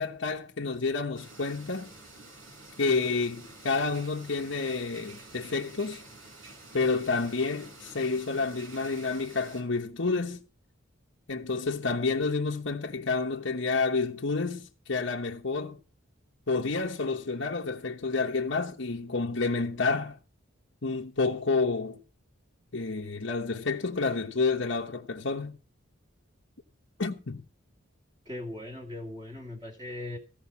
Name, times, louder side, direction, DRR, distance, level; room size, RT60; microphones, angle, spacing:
voice 1, 0.0-1.9 2.8-6.0 6.7-10.4 11.3-15.8 16.5-20.2 20.8-22.0 22.7-25.6 27.0-27.4, left 4 dB, 65° left, 1.1 m, -29 dB
sound 1, 1.1-9.6, right 2 dB, 75° right, 5.6 m, -49 dB
voice 2, 28.3-30.2, left 1 dB, 20° right, 2.1 m, -39 dB
16.0 x 5.3 x 8.4 m
head